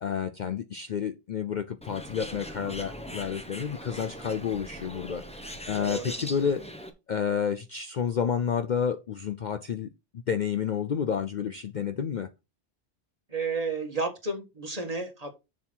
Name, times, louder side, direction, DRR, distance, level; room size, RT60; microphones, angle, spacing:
voice 1, 0.0-6.6 7.1-9.9 10.3-12.3, left 7 dB, 50° left, 0.6 m, -30 dB
Bird, 1.8-6.9, equal, 5° left, 1.1 m, -40 dB
voice 2, 13.3-15.3, right 3 dB, 35° right, 1.8 m, -32 dB
7.2 x 6.3 x 4.5 m
omnidirectional pair, 1.2 m